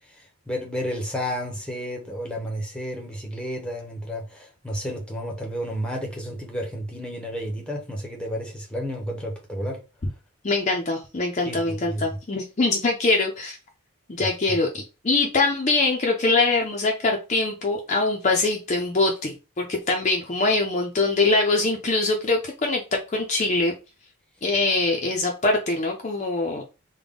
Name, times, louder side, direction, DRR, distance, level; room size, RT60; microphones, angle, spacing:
voice 1, 0.5-9.8 11.5-12.0 14.2-14.3, equal, 5° left, 0.8 m, -31 dB
voice 2, 10.4-13.6 14.1-23.7 24.4-26.6, left 3 dB, 35° left, 0.5 m, -23 dB
3.5 x 2.2 x 3.6 m
head